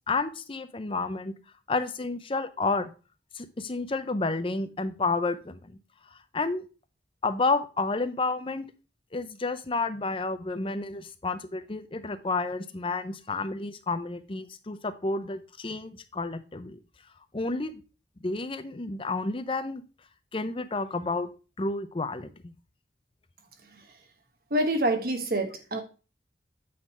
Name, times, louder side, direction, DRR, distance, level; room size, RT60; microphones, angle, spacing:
voice 1, 0.1-1.3 1.7-2.9 3.3-5.8 6.1-6.6 7.2-8.7 9.1-16.8 17.3-17.8 18.2-19.8 20.3-21.3 21.6-22.5, left 3 dB, 30° left, 10 dB, 0.6 m, -30 dB
voice 2, 24.5-25.8, right 1 dB, 55° right, 6 dB, 1.2 m, -27 dB
8.6 x 3.9 x 4.2 m, 0.33 s
head